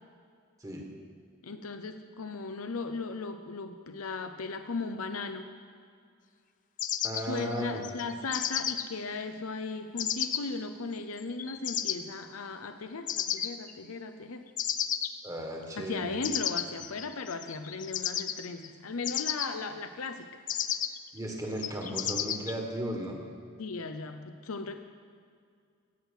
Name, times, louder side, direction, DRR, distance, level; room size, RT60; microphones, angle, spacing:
voice 1, 1.4-5.5 7.2-14.5 15.8-20.3 23.6-24.8, left 3 dB, 80° left, 7 dB, 0.7 m, -37 dB
sound 1, 6.8-8.9 10.0-10.4 11.2-12.0 13.1-13.7 14.6-15.1 16.2-18.7 19.0-19.5 20.5-21.1 21.6-22.5, left 10 dB, 35° left, 0.5 m, -32 dB
voice 2, 7.0-7.8 15.2-16.1 21.1-23.2, equal, 15° right, 1 dB, 1.5 m, -35 dB
16.0 x 6.3 x 8.2 m, 2.3 s
head